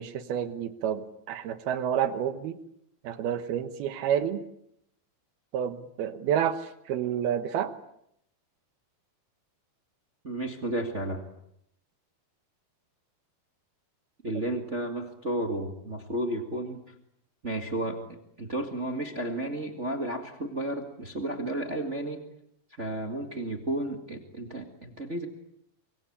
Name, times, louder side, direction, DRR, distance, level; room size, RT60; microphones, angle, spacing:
voice 1, 0.0-2.6 3.0-4.4 5.5-7.7, right 9 dB, 70° right, 11 dB, 2.9 m, -29 dB
voice 2, 10.2-11.2 14.2-16.8 17.4-18.0 18.4-22.2 22.8-25.2, right 1 dB, 45° right, 5 dB, 0.9 m, -32 dB
24.5 x 24.5 x 8.7 m, 0.75 s
omnidirectional pair, 4.9 m